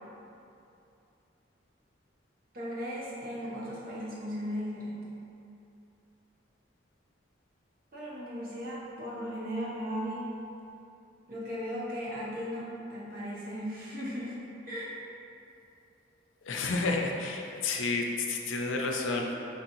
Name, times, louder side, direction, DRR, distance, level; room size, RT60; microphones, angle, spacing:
voice 1, 2.5-5.0 7.9-10.4 11.3-14.9, equal, 50° right, -7 dB, 0.8 m, -37 dB
voice 2, 16.5-19.3, left 3 dB, 90° left, 1 dB, 0.4 m, -30 dB
4.6 x 2.9 x 2.7 m, 2.7 s
head